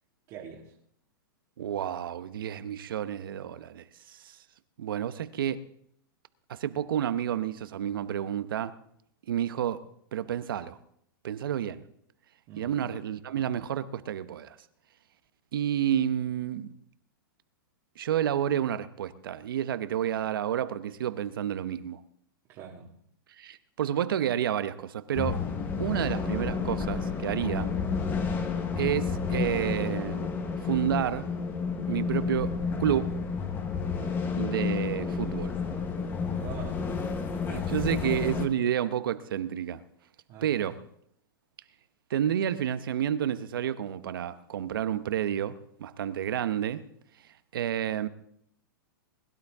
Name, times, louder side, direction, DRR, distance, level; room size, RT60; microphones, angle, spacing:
voice 1, 0.3-0.7 12.5-12.9 22.5-22.9 36.3-36.9 37.5-37.9 40.3-40.8, right 7 dB, 30° right, 1.9 m, -44 dB
voice 2, 1.6-4.3 4.8-5.6 6.5-8.7 9.3-9.8 10.1-10.8 11.2-11.8 12.6-14.5 15.5-16.7 18.0-22.0 23.4-25.4 25.8-27.7 28.8-30.3 30.6-31.3 31.9-32.5 32.8-33.2 34.3-35.5 37.5-39.8 40.4-40.8 42.1-45.5 45.8-46.8 47.5-48.1, right 10 dB, 75° right, 0.9 m, -30 dB
sound 1, 25.1-38.5, left 5 dB, 15° left, 1.2 m, -31 dB
21.0 x 12.0 x 3.6 m
hypercardioid pair, 155°, 12 cm